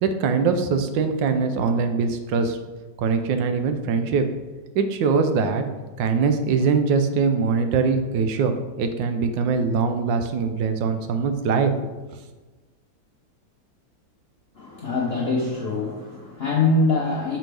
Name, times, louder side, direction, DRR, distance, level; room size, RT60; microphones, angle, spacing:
voice 1, 0.0-2.6 3.0-4.3 4.7-5.6 6.0-11.9, right 5 dB, 80° right, 7 dB, 1.3 m, -22 dB
voice 2, 14.5-17.4, left 3 dB, 55° left, -3 dB, 0.6 m, -23 dB
5.6 x 5.0 x 3.4 m, 1.2 s
omnidirectional pair, 2.0 m